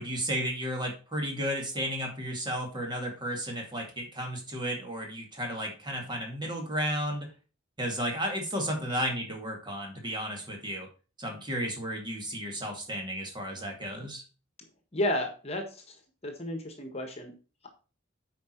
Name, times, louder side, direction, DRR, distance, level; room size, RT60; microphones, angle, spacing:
voice 1, 0.0-7.3 7.8-10.9 11.2-14.2, equal, 25° right, 1 dB, 2.1 m, -33 dB
voice 2, 14.9-15.6 16.2-17.3, left 1 dB, 30° left, 4 dB, 1.5 m, -31 dB
8.6 x 4.9 x 4.5 m, 0.35 s
head